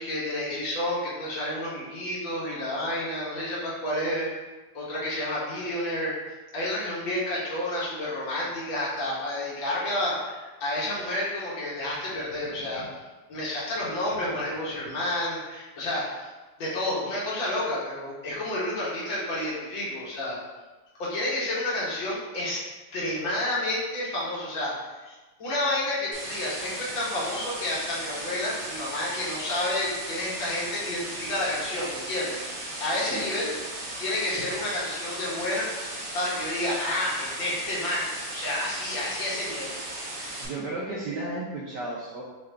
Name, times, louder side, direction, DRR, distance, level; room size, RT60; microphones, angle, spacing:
voice 1, 0.0-4.3 4.7-6.1 6.5-12.8 13.3-16.3 16.6-20.4 21.0-22.6 22.9-32.4 32.8-33.5 34.0-39.7, left 1 dB, 65° left, -7 dB, 1.7 m, -30 dB
sound 1, 26.1-40.5, right 1 dB, 60° right, 1.5 m, -36 dB
voice 2, 40.4-42.2, right 2 dB, 75° right, -5 dB, 1.0 m, -33 dB
4.6 x 2.4 x 3.3 m, 1.2 s
omnidirectional pair, 2.4 m